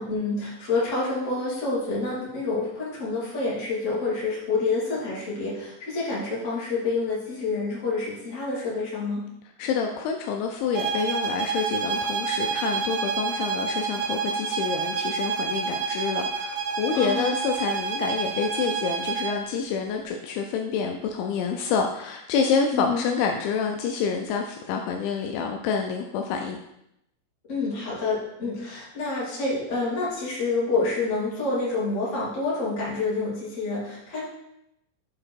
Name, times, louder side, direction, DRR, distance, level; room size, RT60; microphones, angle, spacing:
voice 1, 0.0-9.2 16.9-17.3 22.7-23.0 27.5-34.2, left 3 dB, 40° left, -7 dB, 1.0 m, -28 dB
voice 2, 9.6-26.6, left 6 dB, 85° left, 3 dB, 2.7 m, -28 dB
sound 1, 10.7-19.4, right 5 dB, 80° right, 2.4 m, -28 dB
7.4 x 4.8 x 4.5 m, 0.81 s
omnidirectional pair, 5.6 m